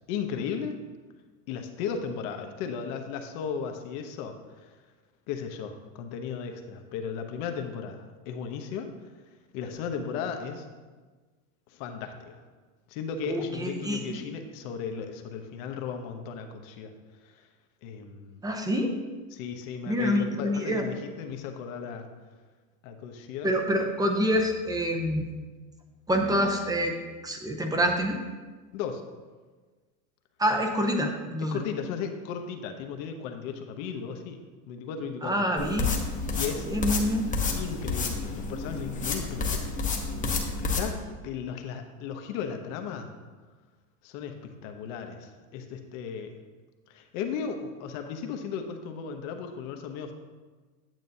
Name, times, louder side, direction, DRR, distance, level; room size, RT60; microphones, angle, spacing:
voice 1, 0.1-0.8 1.5-4.8 5.3-8.9 9.5-10.7 11.7-12.4 12.9-16.9 17.2-17.5 17.8-18.4 19.3-22.1 22.8-23.5 28.7-29.0 31.4-34.4 34.7-35.5 36.3-36.7 37.5-39.7 40.6-43.1 44.0-46.3 46.9-50.1, left 6 dB, 60° left, 5 dB, 1.0 m, -36 dB
voice 2, 13.3-14.2 18.4-18.9 19.9-20.9 23.4-25.3 26.1-26.9 27.2-28.2 30.4-31.6 35.2-36.0 36.7-37.3, equal, 10° right, 4 dB, 0.6 m, -27 dB
sound 1, 35.6-40.9, left 4 dB, 15° left, 0.9 m, -30 dB
9.0 x 7.4 x 2.7 m, 1.4 s
supercardioid pair, 115°, 46 cm